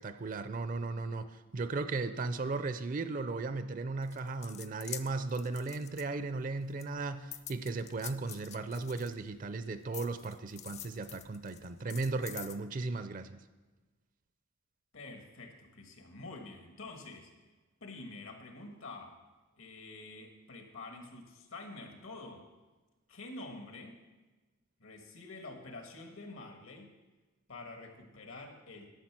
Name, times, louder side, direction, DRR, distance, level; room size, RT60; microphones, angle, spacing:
voice 1, 0.0-13.4, right 3 dB, 40° right, 10 dB, 0.4 m, -36 dB
sound 1, 4.0-6.4 6.8-9.5 9.9-12.6, left 11 dB, 30° left, 0.3 m, -47 dB
voice 2, 14.9-17.3 17.8-19.1 19.6-22.4 23.1-24.0 24.8-26.9 27.5-28.9, left 2 dB, 75° left, 3 dB, 1.6 m, -47 dB
11.5 x 6.7 x 6.0 m, 1.2 s
head